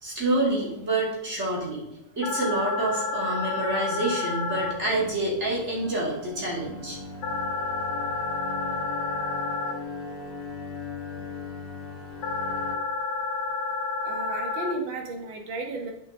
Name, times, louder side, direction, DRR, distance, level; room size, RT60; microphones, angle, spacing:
voice 1, 0.0-1.8 2.2-7.0, right 2 dB, 30° right, -4 dB, 2.4 m, -27 dB
Telefono - Pure Data, 2.2-4.7 7.2-9.7 12.2-14.7, left 4 dB, 85° left, 1.8 m, -30 dB
sound 1, 4.5-12.8, left 2 dB, 50° left, 2.1 m, -39 dB
voice 2, 14.0-15.9, right 2 dB, 65° right, 3 dB, 1.9 m, -33 dB
10.5 x 5.4 x 3.7 m, 0.85 s
omnidirectional pair, 2.4 m